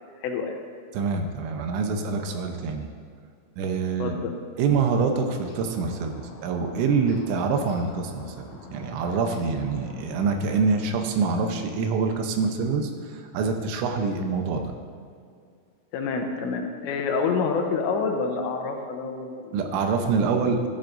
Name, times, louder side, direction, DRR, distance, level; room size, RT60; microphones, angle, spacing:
voice 1, 0.1-0.6 4.0-4.3 15.9-19.5, left 5 dB, 85° left, 3 dB, 3.1 m, -27 dB
voice 2, 0.9-2.9 3.6-4.1 4.6-14.7 19.5-20.7, right 5 dB, 90° right, 5 dB, 3.3 m, -25 dB
sound 1, 4.9-10.9, left 3 dB, 50° left, 2.4 m, -45 dB
14.0 x 12.5 x 2.6 m, 2.2 s
omnidirectional pair, 5.2 m